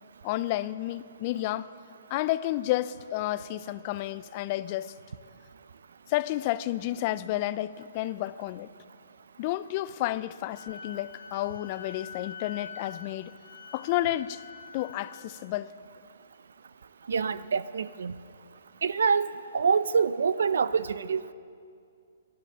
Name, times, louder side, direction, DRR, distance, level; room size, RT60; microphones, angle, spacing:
voice 1, 0.2-1.7 2.1-4.9 6.1-8.7 9.4-13.3 13.7-14.4 14.7-15.7, left 15 dB, 40° left, 0.5 m, -31 dB
Wind instrument woodwind instrument, 10.5-15.3, left 5 dB, 85° left, 1.6 m, -46 dB
voice 2, 17.1-18.1 18.8-19.3 19.5-21.3, right 6 dB, 75° right, 0.6 m, -26 dB
17.0 x 11.5 x 6.9 m
hypercardioid pair, 135°, 0 cm